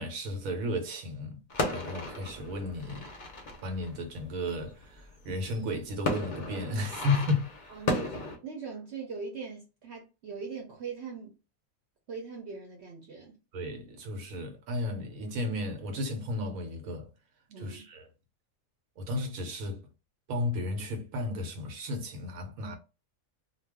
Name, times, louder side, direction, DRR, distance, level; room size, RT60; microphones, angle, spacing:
voice 1, 0.0-1.4 1.7-3.1 3.6-7.8 13.5-17.1 17.6-18.1 19.0-19.8 20.3-22.8, left 2 dB, 90° right, 1.2 m, -33 dB
sound 1, 1.5-8.4, left 2 dB, 45° left, 0.6 m, -35 dB
voice 2, 7.7-11.3 12.1-13.4 17.5-17.8, right 5 dB, 60° right, 0.9 m, -41 dB
2.4 x 2.3 x 3.4 m
omnidirectional pair, 1.4 m